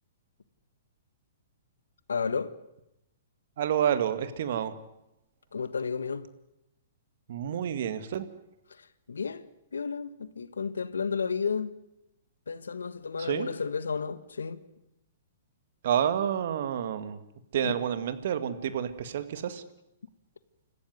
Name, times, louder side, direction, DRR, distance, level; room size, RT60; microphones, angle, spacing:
voice 1, 2.1-2.5 5.5-6.3 8.7-9.4 9.7-11.7 12.5-14.6 17.6-17.7, left 5 dB, 80° left, 1.4 m, -32 dB
voice 2, 3.6-4.7 7.3-8.3 13.2-13.5 15.8-17.2 17.5-19.6, right 9 dB, 60° right, 1.9 m, -29 dB
26.5 x 15.0 x 9.5 m
hypercardioid pair, 120°, 0 cm